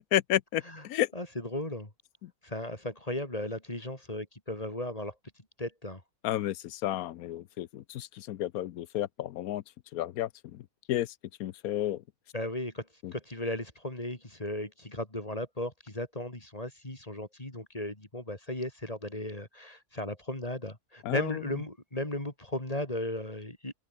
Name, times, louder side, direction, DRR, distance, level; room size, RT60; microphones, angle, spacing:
voice 1, 0.1-1.1 2.2-2.3 6.2-9.6 9.9-10.6 10.9-11.1 11.4-12.0 13.0-13.1 21.0-21.4, left 13 dB, 90° left, 1.2 m, -31 dB
voice 2, 1.1-1.9 2.4-5.1 5.6-6.0 12.3-12.8 13.1-23.7, left 1 dB, 25° left, 3.7 m, -36 dB
open air
omnidirectional pair, 1.5 m